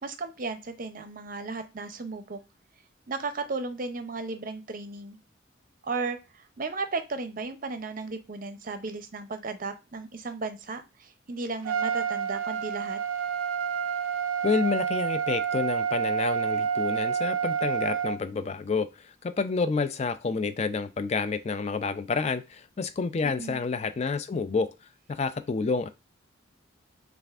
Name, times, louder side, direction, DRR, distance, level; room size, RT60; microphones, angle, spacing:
voice 1, 0.0-2.4 3.1-5.2 5.8-13.0 23.2-23.6, right 3 dB, 45° right, 0.6 m, -35 dB
Trumpet, 11.6-18.2, right 7 dB, 90° right, 0.4 m, -28 dB
voice 2, 14.4-24.7 25.1-25.9, left 4 dB, 35° left, 0.3 m, -29 dB
6.6 x 2.5 x 2.4 m
head